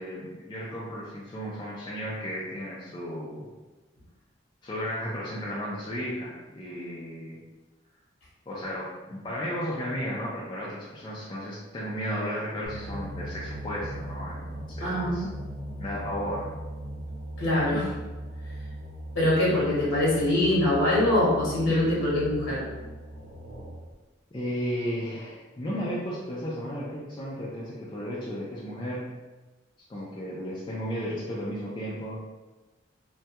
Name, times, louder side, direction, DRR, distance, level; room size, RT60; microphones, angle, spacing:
voice 1, 0.0-3.5 4.6-7.4 8.5-15.3 15.8-16.5 24.3-29.1 29.9-32.2, equal, 25° left, -7 dB, 0.4 m, -34 dB
sound 1, 12.6-23.9, right 1 dB, 85° right, 0.6 m, -39 dB
voice 2, 14.8-15.2 17.4-17.9 19.1-22.6, left 1 dB, 85° left, -6 dB, 0.8 m, -23 dB
2.2 x 2.2 x 2.8 m, 1.2 s
head